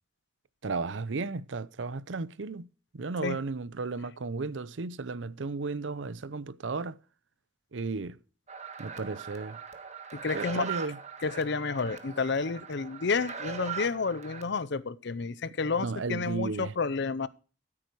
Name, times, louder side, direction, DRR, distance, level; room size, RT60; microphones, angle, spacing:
voice 1, 0.6-2.7 2.9-7.0 7.7-8.2 8.8-9.6 10.3-11.0 15.8-16.8, right 4 dB, 90° right, 0.7 m, -34 dB
sound 1, 8.5-14.4, right 6 dB, 40° right, 1.6 m, -41 dB
voice 2, 10.1-10.7 11.2-17.3, left 4 dB, 65° left, 0.7 m, -30 dB
14.5 x 8.7 x 4.6 m
head